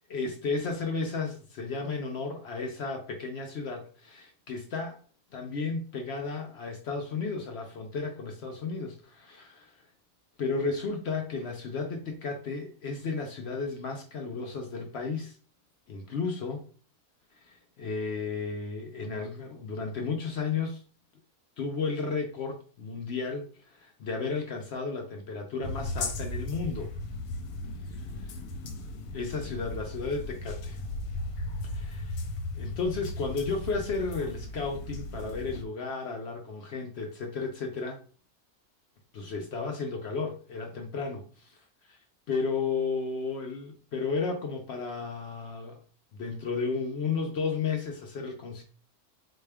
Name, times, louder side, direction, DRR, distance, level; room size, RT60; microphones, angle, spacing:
voice 1, 0.1-5.0 5.3-9.8 10.4-15.3 15.9-16.6 17.4-20.8 21.6-26.9 29.1-30.8 31.6-32.2 32.5-38.0 39.1-41.6 41.9-42.0 42.3-45.8 46.1-48.6, left 4 dB, 65° left, 2 dB, 0.7 m, -33 dB
sound 1, 25.6-35.6, left 2 dB, 80° left, 1.1 m, -36 dB
4.2 x 2.2 x 3.3 m, 0.41 s
omnidirectional pair, 1.6 m